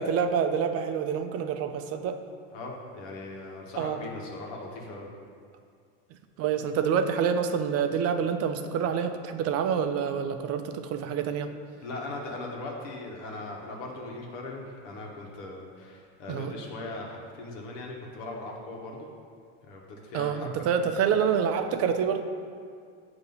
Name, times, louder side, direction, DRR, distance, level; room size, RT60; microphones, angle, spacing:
voice 1, 0.0-2.2 3.8-4.0 6.4-11.5 16.3-16.5 20.1-22.2, right 7 dB, 45° right, 8 dB, 0.5 m, -27 dB
voice 2, 2.5-5.1 11.8-19.1 19.7-20.5, left 2 dB, 85° left, -1 dB, 1.3 m, -39 dB
7.6 x 2.9 x 5.4 m, 2.2 s
supercardioid pair, 115°, 36 cm